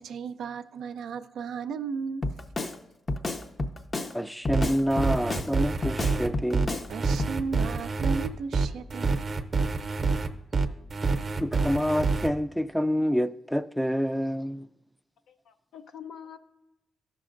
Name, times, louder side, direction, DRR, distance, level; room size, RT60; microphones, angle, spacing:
voice 1, 0.0-2.3 6.9-9.2, right 5 dB, 85° right, 0.4 m, -35 dB
Drum kit, 2.2-2.8 3.1-4.1 4.4-5.5 5.8-6.9 7.2-7.4, left 2 dB, 40° left, 0.6 m, -31 dB
voice 2, 4.1-6.8 11.4-14.7, equal, ahead, 0.4 m, -27 dB
sound 1, 4.5-12.3, right 4 dB, 45° right, 0.7 m, -27 dB
voice 3, 15.3-16.4, left 8 dB, 80° left, 0.6 m, -45 dB
13.5 x 5.9 x 2.5 m
cardioid pair, 65°, 0 cm